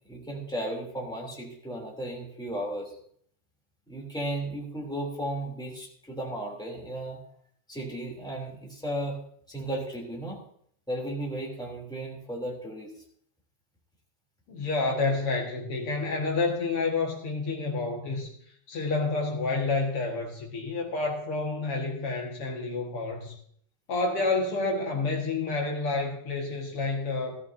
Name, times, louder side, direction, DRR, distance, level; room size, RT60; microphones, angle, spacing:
voice 1, 0.1-2.9 3.9-7.2 7.7-9.2 9.5-10.4 10.9-12.9, right 1 dB, ahead, -2 dB, 2.0 m, -35 dB
voice 2, 14.5-18.3 18.7-23.3 23.9-27.4, left 3 dB, 55° left, 0 dB, 1.6 m, -29 dB
16.0 x 14.0 x 2.7 m, 0.63 s
omnidirectional pair, 4.9 m